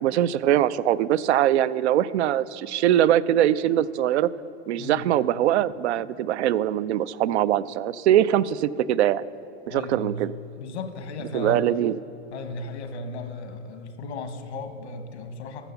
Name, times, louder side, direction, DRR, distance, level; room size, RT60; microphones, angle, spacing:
voice 1, 0.0-4.3 4.7-9.2 9.7-10.3 11.3-12.0, right 11 dB, 80° right, 16 dB, 0.5 m, -22 dB
voice 2, 9.7-10.2 10.6-11.7 12.3-15.7, left 3 dB, 80° left, 8 dB, 1.3 m, -35 dB
13.0 x 7.0 x 6.9 m, 2.8 s
hypercardioid pair, 100°, 33 cm